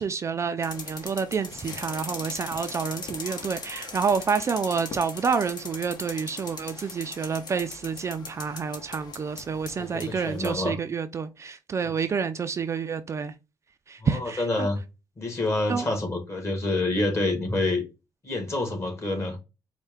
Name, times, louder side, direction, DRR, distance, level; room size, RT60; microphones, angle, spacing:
voice 1, 0.0-13.3 13.9-14.7 15.7-15.9, right 6 dB, 35° right, 0.3 m, -28 dB
sound 1, 0.6-10.6, left 3 dB, 55° left, 1.0 m, -39 dB
voice 2, 9.8-10.8 14.0-14.8 15.2-17.8 18.2-19.4, left 2 dB, 30° left, 1.4 m, -27 dB
4.3 x 2.2 x 3.5 m
cardioid pair, 105°, 8 cm